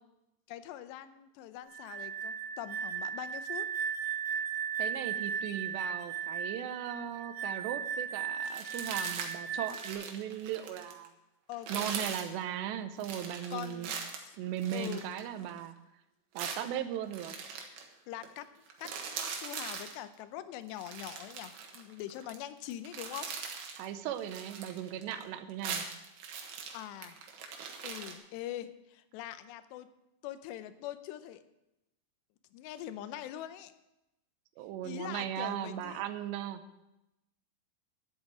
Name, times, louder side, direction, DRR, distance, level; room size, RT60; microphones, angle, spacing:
voice 1, 0.5-3.7 11.5-12.0 13.5-14.4 14.7-15.0 18.1-23.3 26.7-27.2 27.8-29.9 30.2-31.4 32.5-33.7 34.8-36.0, left 12 dB, 85° left, 12 dB, 2.9 m, -43 dB
sound 1, 1.7-9.9, right 7 dB, 55° right, 2.1 m, -36 dB
voice 2, 4.8-11.1 11.7-13.9 14.4-15.7 16.3-17.4 23.7-25.9 34.6-36.6, right 10 dB, 85° right, 10 dB, 3.0 m, -37 dB
sound 2, 8.4-9.4 9.6-11.1 11.5-12.3 13.0-15.6 16.4-17.9 18.2-18.4 18.7-20.0 20.7-22.4 22.7-23.9 24.2-25.2 25.5-28.1, right 6 dB, 70° right, 3.1 m, -41 dB
11.0 x 8.6 x 7.5 m, 0.92 s
omnidirectional pair, 4.9 m